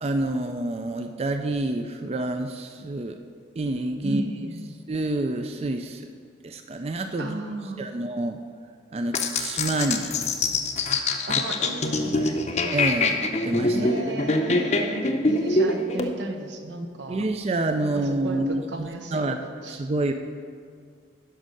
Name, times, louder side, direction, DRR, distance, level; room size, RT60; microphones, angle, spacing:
voice 1, 0.0-3.2 3.6-4.2 4.9-6.0 6.4-7.4 7.8-8.4 8.9-10.1 12.1-12.4 12.7-13.9 16.8-19.4 19.7-20.1, right 2 dB, 35° right, 6 dB, 0.4 m, -28 dB
voice 2, 4.0-4.7 7.2-7.8 11.3-12.4 13.7-17.3 17.8-19.3 19.6-19.9, right 2 dB, 85° right, 5 dB, 1.0 m, -34 dB
sound 1, 9.1-16.1, left 2 dB, 40° left, 0.7 m, -24 dB
11.5 x 5.4 x 6.4 m, 2.1 s
head